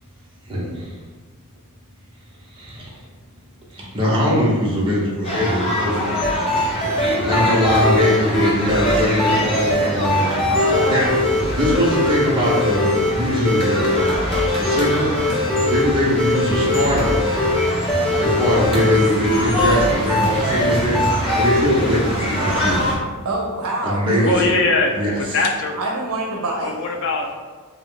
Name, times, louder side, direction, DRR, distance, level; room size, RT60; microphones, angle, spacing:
voice 1, 0.5-0.9 2.5-2.9 3.7-6.4 7.2-17.4 18.2-22.9 23.8-24.3 24.9-25.1, equal, 25° right, -6 dB, 0.8 m, -22 dB
sound 1, 5.2-22.9, left 1 dB, 25° left, 0.9 m, -25 dB
sound 2, 6.2-21.6, left 1 dB, ahead, 0.4 m, -21 dB
voice 2, 23.2-24.5 25.8-26.7, right 2 dB, 85° right, -1 dB, 0.5 m, -25 dB
voice 3, 24.2-25.8 26.6-27.3, left 3 dB, 60° left, 2 dB, 0.5 m, -21 dB
3.5 x 2.5 x 3.7 m, 1.4 s
head